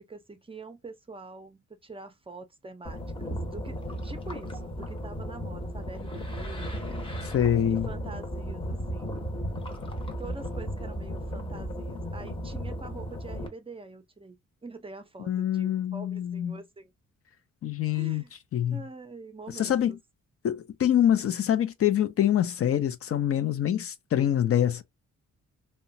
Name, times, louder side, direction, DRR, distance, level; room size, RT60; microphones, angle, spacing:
voice 1, 0.0-6.8 7.7-9.1 10.2-16.9 17.9-18.3 18.7-20.0, right 3 dB, 20° right, 0.5 m, -45 dB
sound 1, 2.8-13.5, equal, 20° left, 0.8 m, -35 dB
voice 2, 7.2-7.9 15.3-16.6 17.6-18.2 18.5-18.8 19.5-20.0 20.4-24.8, left 10 dB, 50° left, 0.4 m, -25 dB
2.8 x 2.2 x 2.6 m
cardioid pair, 110°, 29 cm